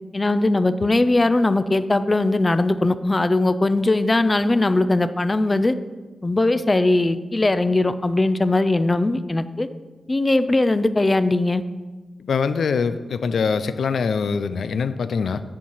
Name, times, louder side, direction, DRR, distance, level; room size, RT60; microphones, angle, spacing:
voice 1, 0.1-5.7 6.2-9.7 10.1-11.6, left 2 dB, 25° left, 12 dB, 0.4 m, -20 dB
voice 2, 12.3-15.4, left 5 dB, 90° left, 12 dB, 0.4 m, -23 dB
9.8 x 4.6 x 5.6 m, 1.3 s
wide cardioid pair, 105°, 0 cm